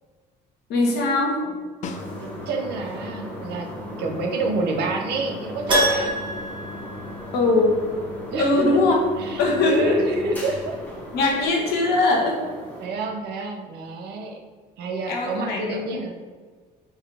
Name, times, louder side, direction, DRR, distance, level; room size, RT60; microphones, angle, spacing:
voice 1, 0.7-1.6 7.3-7.8 8.4-9.0 9.4-10.0 11.1-12.4 15.1-16.1, left 2 dB, 85° left, -1 dB, 1.1 m, -21 dB
Snare drum, 1.8-2.7 7.2-7.3, left 4 dB, 45° left, 0.4 m, -38 dB
sound 1, 1.8-12.9, left 1 dB, 10° left, 1.2 m, -37 dB
voice 2, 2.2-6.1 8.3-8.6 8.9-10.8 12.8-14.4 14.8-16.1, right 3 dB, 75° right, 3 dB, 0.6 m, -28 dB
Keyboard (musical), 5.7-7.7 8.0-8.1 10.8-10.9 11.1-11.2, right 1 dB, 30° right, 1.4 m, -25 dB
4.0 x 2.6 x 4.8 m, 1.5 s
cardioid pair, 110°, 17 cm